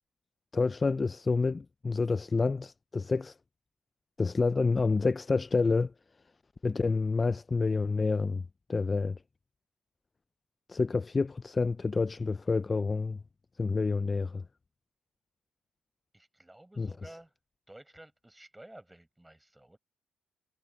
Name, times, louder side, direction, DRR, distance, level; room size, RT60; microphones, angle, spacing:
voice 1, 0.5-3.3 4.2-5.9 6.6-8.4 8.7-9.2 10.7-13.2 13.6-14.4 16.8-16.9, left 4 dB, 30° left, 0.4 m, -28 dB
voice 2, 16.1-17.3 17.7-19.8, right 1 dB, 10° right, 7.5 m, -53 dB
cardioid pair, 90°, 0 cm